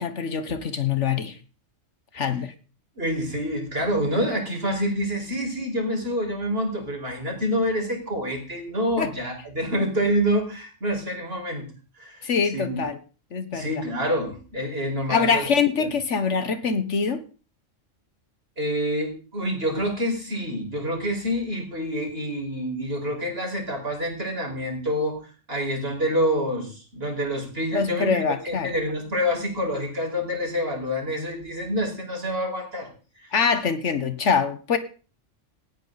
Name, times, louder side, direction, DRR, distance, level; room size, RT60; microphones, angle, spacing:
voice 1, 0.0-1.3 2.1-2.5 9.0-9.1 12.2-13.0 13.3-13.7 15.1-17.2 27.7-28.7 33.3-34.8, left 6 dB, 65° left, 11 dB, 1.5 m, -24 dB
voice 2, 3.0-11.7 12.0-12.3 12.5-12.8 13.5-15.4 15.8-15.9 18.6-25.2 25.5-32.9 33.2-33.3, equal, 50° right, 2 dB, 5.4 m, -27 dB
18.0 x 14.0 x 4.1 m, 0.37 s
omnidirectional pair, 1.3 m